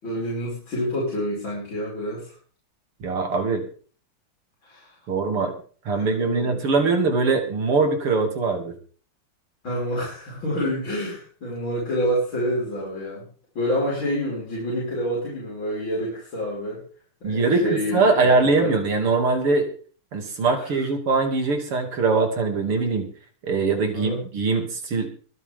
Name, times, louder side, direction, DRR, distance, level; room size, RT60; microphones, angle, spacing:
voice 1, 0.0-2.3 4.6-5.0 5.9-6.6 9.6-13.3 13.5-16.8 17.2-18.8 20.6-20.7 23.9-24.2, equal, 65° left, -6 dB, 6.3 m, -28 dB
voice 2, 3.0-3.7 5.1-5.5 5.9-8.7 17.2-19.7 20.1-23.1 23.4-25.1, right 4 dB, 85° right, 4 dB, 3.7 m, -22 dB
23.5 x 9.1 x 3.7 m, 0.41 s
omnidirectional pair, 2.4 m